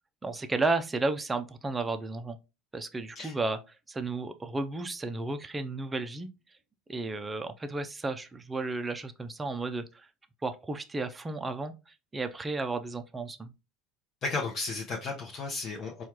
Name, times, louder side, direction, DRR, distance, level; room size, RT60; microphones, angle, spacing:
voice 1, 0.2-2.4 2.7-3.6 3.9-6.3 6.9-10.1 10.4-11.7 12.1-13.5, right 3 dB, 20° right, 0.5 m, -33 dB
voice 2, 14.2-16.0, left 3 dB, 45° left, 0.7 m, -34 dB
4.4 x 2.4 x 2.9 m
hypercardioid pair, 75°, 0 cm